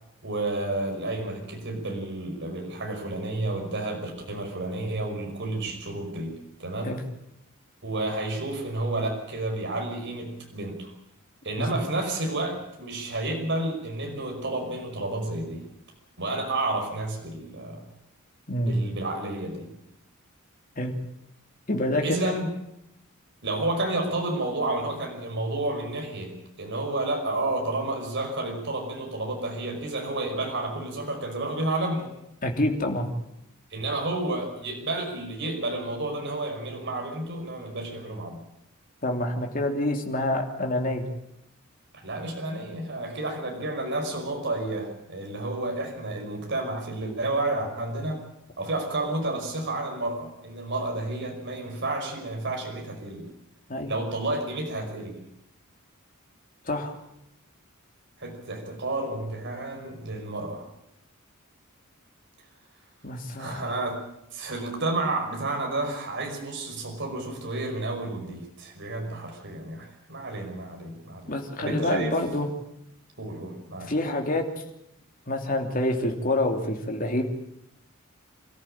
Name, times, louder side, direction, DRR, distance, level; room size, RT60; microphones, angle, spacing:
voice 1, 0.2-6.3 6.6-6.9 7.8-10.9 11.4-15.6 16.2-17.8 18.6-19.7 22.0-22.5 23.4-32.1 33.7-38.4 41.9-48.2 48.6-53.3 53.9-55.2 58.2-60.6 63.4-64.0 64.3-71.3 71.6-72.1 73.2-73.9, right 2 dB, 55° right, 2 dB, 5.6 m, -31 dB
voice 2, 18.5-18.8 20.8-20.9 21.7-22.3 32.4-33.1 39.0-41.0 53.7-53.9 56.6-57.0 63.0-63.6 71.3-72.5 73.8-74.4 75.3-77.2, left 1 dB, 40° left, 2 dB, 3.2 m, -27 dB
26.5 x 14.5 x 8.9 m, 0.82 s
head